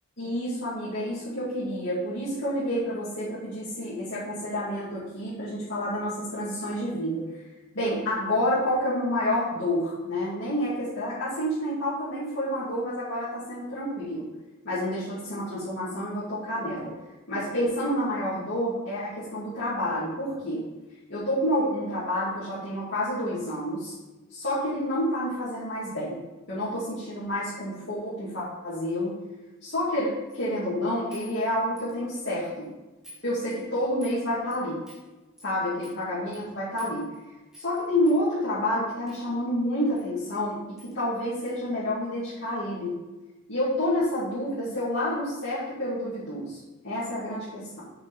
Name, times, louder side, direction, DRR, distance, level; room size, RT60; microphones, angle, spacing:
voice 1, 0.2-7.3 7.7-14.3 14.6-16.9 17.3-20.6 21.1-23.9 24.3-26.2 26.5-29.1 29.6-32.7 33.2-34.7 35.4-37.1 37.5-42.9 43.5-46.6 46.8-47.9, left 1 dB, 55° left, -12 dB, 2.7 m, -29 dB
sound 1, 30.3-30.5 31.1-32.2 32.4-32.6 33.0-33.2 33.5-34.2 34.5-34.6 34.9-35.0 35.4-35.5 35.8-36.0 36.3-36.4 36.8-37.2 37.5-37.8 38.1-38.2 39.1-39.2 40.0-40.1 40.3-40.4 40.8-41.0 41.4-41.6, left 2 dB, ahead, 2.1 m, -50 dB
7.0 x 5.8 x 5.1 m, 1.1 s
head